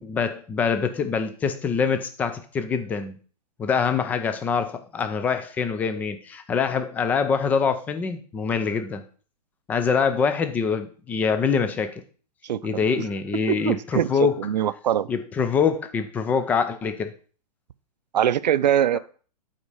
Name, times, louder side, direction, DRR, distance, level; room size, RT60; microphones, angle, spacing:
voice 1, 0.0-3.2 3.6-9.0 9.7-12.0 12.6-14.4 15.1-17.1, left 6 dB, 10° left, 9 dB, 0.4 m, -24 dB
voice 2, 12.4-12.8 13.5-15.1 18.1-19.0, right 10 dB, 80° right, 16 dB, 0.5 m, -23 dB
8.4 x 4.2 x 4.9 m, 0.40 s
hypercardioid pair, 155°, 21 cm